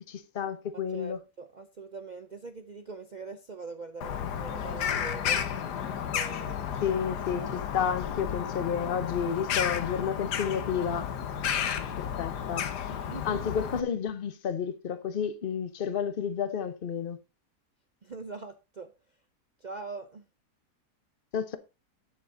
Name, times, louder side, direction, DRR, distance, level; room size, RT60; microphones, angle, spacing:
voice 1, 0.0-1.2 6.8-11.1 12.0-12.7 13.2-17.2 21.3-21.6, left 7 dB, 40° left, 0.9 m, -31 dB
voice 2, 0.7-5.4 6.1-6.7 12.9-13.4 18.0-18.9 19.6-20.2, right 4 dB, 60° right, 0.4 m, -42 dB
Bird vocalization bird call bird song, 4.0-13.8, left 8 dB, 80° left, 1.6 m, -32 dB
10.0 x 7.0 x 3.8 m
omnidirectional pair, 1.7 m